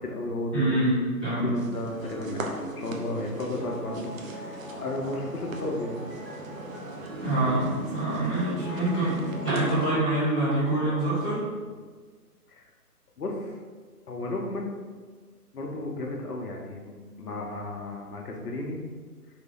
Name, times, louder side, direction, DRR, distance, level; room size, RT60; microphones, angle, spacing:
voice 1, 0.0-0.8 1.4-6.0 12.5-12.6 13.2-13.5 14.1-14.8 15.5-16.9 17.2-18.8, left 2 dB, 70° left, 0 dB, 0.8 m, -33 dB
voice 2, 0.5-1.5 7.2-11.5, right 1 dB, 5° right, -19 dB, 0.6 m, -26 dB
sound 1, 1.5-9.7, right 2 dB, 60° right, 0.6 m, -38 dB
sound 2, 2.0-11.4, right 1 dB, 40° right, 1.2 m, -42 dB
3.6 x 2.8 x 3.3 m, 1.5 s
figure-of-eight pair, 135°, 47 cm